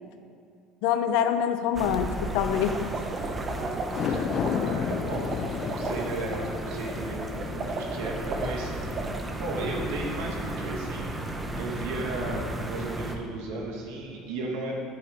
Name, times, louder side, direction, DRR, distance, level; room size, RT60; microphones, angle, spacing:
voice 1, 0.8-2.9, left 8 dB, 75° left, 8 dB, 0.7 m, -25 dB
sound 1, 1.7-13.2, right 1 dB, 15° right, 1.1 m, -35 dB
sound 2, 2.7-9.2, right 4 dB, 40° right, 1.1 m, -36 dB
sound 3, 3.8-10.3 10.7-10.8, left 9 dB, 50° left, 0.3 m, -34 dB
voice 2, 4.0-5.3 5.7-8.7 9.4-11.2 11.6-14.7, right 2 dB, 80° right, -1 dB, 2.3 m, -35 dB
10.0 x 9.3 x 5.1 m, 2.4 s
supercardioid pair, 115°, 0 cm